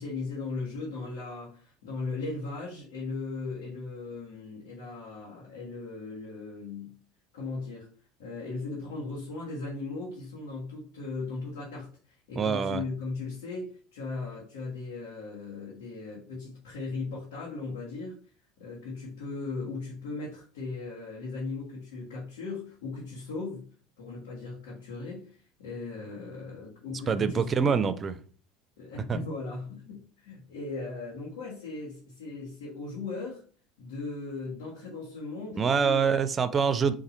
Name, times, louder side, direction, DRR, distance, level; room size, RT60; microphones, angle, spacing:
voice 1, 0.0-6.9 7.3-7.9 8.2-18.2 18.6-23.7 24.0-27.8 28.8-33.4 33.8-36.3, left 3 dB, 70° left, 1.4 m, -38 dB
voice 2, 12.4-12.8 27.1-28.1 29.1-29.2 35.6-36.9, right 6 dB, 30° right, 0.5 m, -25 dB
4.1 x 2.6 x 3.9 m
hypercardioid pair, 75°, 0 cm